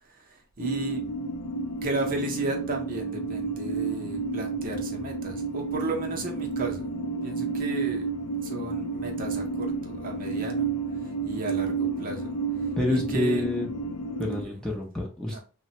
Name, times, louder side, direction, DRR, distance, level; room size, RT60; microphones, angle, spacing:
voice 1, 0.1-1.0 1.8-6.9 7.2-8.1 8.4-10.7 11.0-12.4 12.9-13.4 15.3-15.4, right 3 dB, 40° right, 1 dB, 0.6 m, -34 dB
sound 1, 0.6-14.4, right 4 dB, 80° left, 0.5 m, -31 dB
voice 2, 12.8-13.7 14.2-15.4, left 1 dB, 5° left, -2 dB, 0.5 m, -28 dB
3.3 x 2.1 x 2.7 m, 0.34 s
head